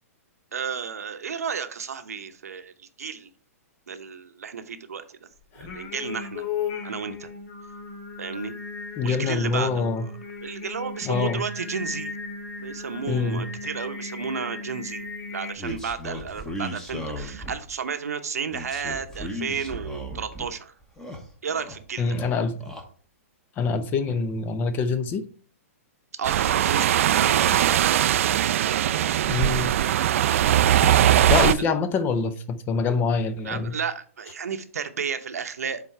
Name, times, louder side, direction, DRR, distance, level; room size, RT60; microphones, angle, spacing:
voice 1, 0.5-3.3 3.9-5.2 5.5-6.5 6.8-7.3 8.2-8.5 9.0-10.0 10.4-12.1 12.6-20.7 21.4-22.1 26.2-27.8 31.6-31.7 33.4-35.8, right 6 dB, 90° right, 0.8 m, -32 dB
Singing, 5.5-15.5, left 5 dB, 55° left, 2.5 m, -36 dB
voice 2, 9.0-10.0 11.0-11.4 13.1-13.4 22.0-22.7 23.6-25.3 29.3-29.7 31.3-33.7, left 5 dB, 25° left, 0.6 m, -25 dB
sound 1, 15.6-17.7 18.5-20.5 20.8-21.8 22.0-22.8, equal, 5° left, 1.2 m, -36 dB
sound 2, 26.2-31.5, right 11 dB, 60° right, 0.4 m, -20 dB
7.4 x 3.7 x 4.5 m
hypercardioid pair, 140°, 8 cm